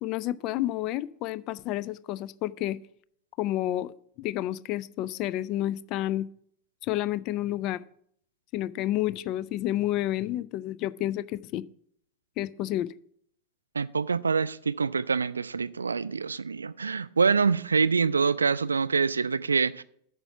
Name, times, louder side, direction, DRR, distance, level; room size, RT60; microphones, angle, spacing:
voice 1, 0.0-2.8 3.4-6.3 6.8-7.8 8.5-11.6 12.4-12.9, left 14 dB, 40° left, 0.3 m, -30 dB
voice 2, 13.7-19.8, right 5 dB, 75° right, 0.3 m, -25 dB
8.9 x 6.0 x 5.7 m
figure-of-eight pair, 90°, 0 cm